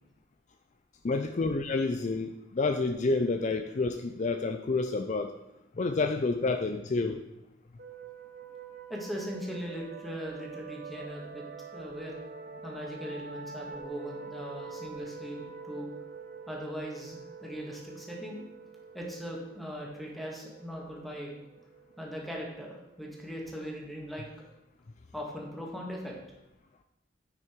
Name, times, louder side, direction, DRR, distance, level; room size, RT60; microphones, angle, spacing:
voice 1, 1.0-5.4 5.8-7.3, left 3 dB, 40° left, 7 dB, 0.4 m, -29 dB
sound 1, 7.8-23.1, right 5 dB, 50° right, 1.0 m, -45 dB
voice 2, 8.9-11.4 11.7-12.1 12.6-15.9 16.5-18.4 18.9-21.3 22.0-24.3 25.1-26.1, equal, ahead, -2 dB, 1.9 m, -39 dB
9.4 x 6.1 x 4.5 m, 0.90 s
head